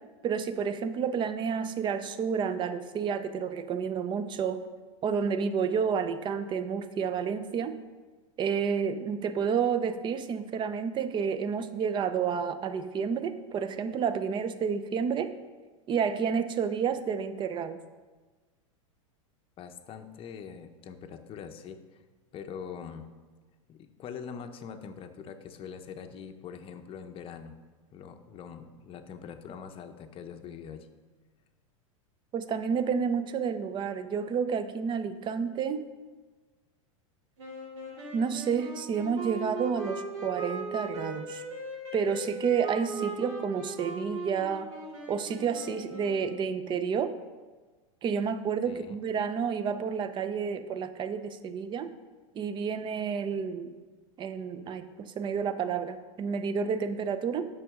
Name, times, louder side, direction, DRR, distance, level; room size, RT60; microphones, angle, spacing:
voice 1, 0.2-4.6 5.0-7.7 8.4-15.3 15.9-17.8 32.3-35.8 38.1-41.4 41.9-44.7 45.1-47.1 48.0-51.9 52.3-53.7 54.2-57.5, right 6 dB, 30° right, 12 dB, 0.6 m, -30 dB
voice 2, 19.6-22.0 22.3-23.1 23.7-27.5 27.9-30.9 48.6-49.0, left 7 dB, 30° left, 7 dB, 0.7 m, -43 dB
sound 1, 37.4-46.6, right 2 dB, 65° right, 2.6 m, -38 dB
8.9 x 6.3 x 3.7 m, 1.3 s
hypercardioid pair, 115°, 17 cm